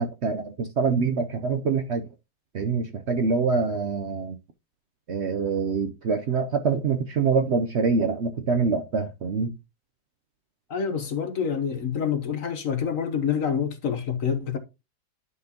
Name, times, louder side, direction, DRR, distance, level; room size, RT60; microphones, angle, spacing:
voice 1, 0.0-2.0 2.5-4.4 5.1-9.5, right 4 dB, 65° right, 0.6 m, -25 dB
voice 2, 10.7-14.6, left 7 dB, 50° left, 1.2 m, -27 dB
11.0 x 5.9 x 2.9 m
omnidirectional pair, 2.0 m